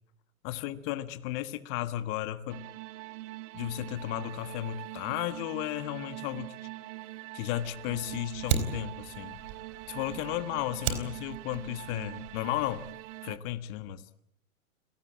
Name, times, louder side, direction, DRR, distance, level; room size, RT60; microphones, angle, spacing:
voice 1, 0.4-2.6 3.5-6.5 7.3-9.4 9.9-12.8 13.2-14.1, left 13 dB, 40° left, 11 dB, 1.6 m, -34 dB
sound 1, 2.5-13.4, right 20 dB, 35° right, 1.2 m, -43 dB
Fire, 7.6-12.9, right 9 dB, 50° right, 4.2 m, -37 dB
30.0 x 18.0 x 8.8 m, 0.76 s
hypercardioid pair, 120°, 42 cm